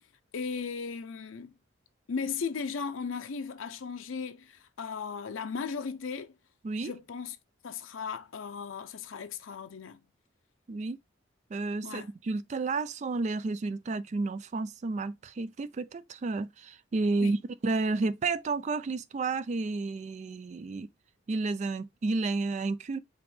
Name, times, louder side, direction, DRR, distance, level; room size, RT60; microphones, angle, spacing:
voice 1, 0.3-1.5 2.1-6.3 6.8-7.4 7.6-10.0 11.8-12.1 17.1-17.4, left 5 dB, 90° left, 0.5 m, -36 dB
voice 2, 11.5-20.9 21.3-23.0, right 3 dB, 35° right, 0.3 m, -31 dB
5.0 x 3.0 x 3.1 m
head